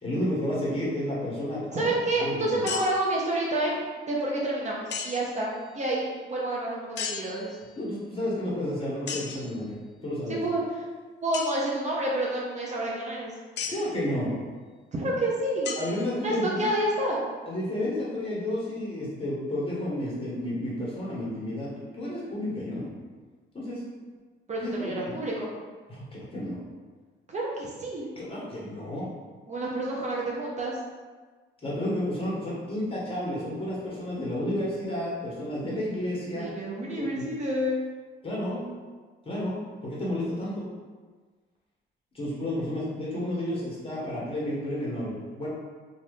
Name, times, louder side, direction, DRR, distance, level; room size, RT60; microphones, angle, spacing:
voice 1, 0.0-1.8 2.1-2.6 7.8-10.4 13.7-14.3 15.8-16.6 17.5-22.9 23.5-23.8 24.6-25.1 25.9-26.6 28.2-29.1 31.6-36.5 37.0-37.3 38.2-38.7 39.2-40.7 42.1-45.5, left 1 dB, 25° left, -6 dB, 1.3 m, -31 dB
voice 2, 1.7-3.8 4.1-5.5 5.7-7.5 10.3-10.6 11.2-13.3 14.9-15.8 16.2-17.2 24.5-25.5 27.3-28.1 29.5-30.8 36.4-37.8, right 1 dB, 35° right, -4 dB, 0.6 m, -29 dB
sound 1, 2.7-3.2 4.9-5.5 7.0-7.8 9.1-9.6 11.3-11.5 13.6-14.0 15.6-16.5, left 6 dB, 60° left, 0.4 m, -36 dB
2.7 x 2.4 x 3.4 m, 1.4 s
cardioid pair, 90°, 20 cm